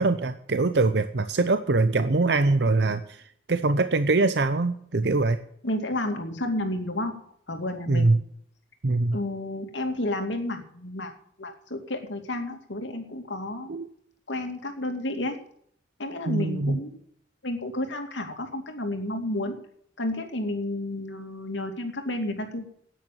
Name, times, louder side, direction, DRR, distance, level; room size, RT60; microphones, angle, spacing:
voice 1, 0.0-3.2 3.5-5.4 7.9-8.2 8.8-9.2 13.7-13.9 16.3-16.8, right 3 dB, 65° right, 10 dB, 0.7 m, -23 dB
voice 2, 5.6-7.2 7.5-8.2 9.1-11.1 11.4-13.7 14.3-15.4 16.0-17.0 17.4-19.6 20.0-22.6, left 1 dB, 85° left, 5 dB, 2.5 m, -31 dB
10.5 x 9.3 x 8.6 m, 0.67 s
head